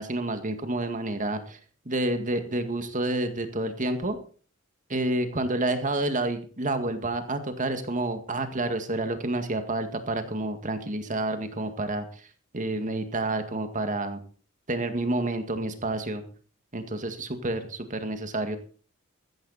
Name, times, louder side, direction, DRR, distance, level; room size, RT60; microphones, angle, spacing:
voice 1, 0.0-1.6 1.9-4.2 4.9-12.3 12.5-14.2 14.7-16.2 16.7-18.6, right 2 dB, 40° right, 8 dB, 1.9 m, -29 dB
14.5 x 14.0 x 4.2 m, 0.41 s
head